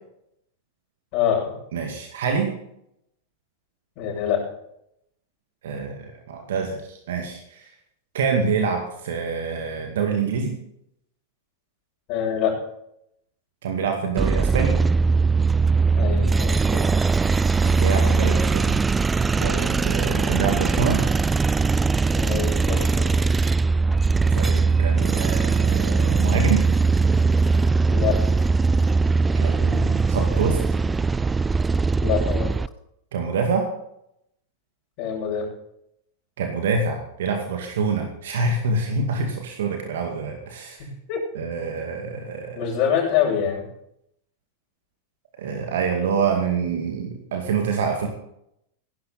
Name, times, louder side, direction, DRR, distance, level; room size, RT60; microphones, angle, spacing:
voice 1, 1.1-1.5 4.0-4.4 12.1-12.6 16.0-16.8 22.1-23.1 27.9-28.2 32.0-32.5 35.0-35.5 41.1-41.2 42.6-43.6, left 8 dB, 40° left, -6 dB, 7.2 m, -25 dB
voice 2, 1.7-2.5 5.6-7.6 8.1-10.6 13.6-14.8 17.6-18.8 19.4-21.0 24.3-26.6 29.4-30.6 33.1-33.7 36.4-40.9 41.4-42.6 45.4-48.1, right 5 dB, 60° right, 3 dB, 2.2 m, -26 dB
sound 1, 14.2-32.7, right 4 dB, 15° right, 0.4 m, -20 dB
16.5 x 12.0 x 4.2 m, 0.77 s
figure-of-eight pair, 90°, 0 cm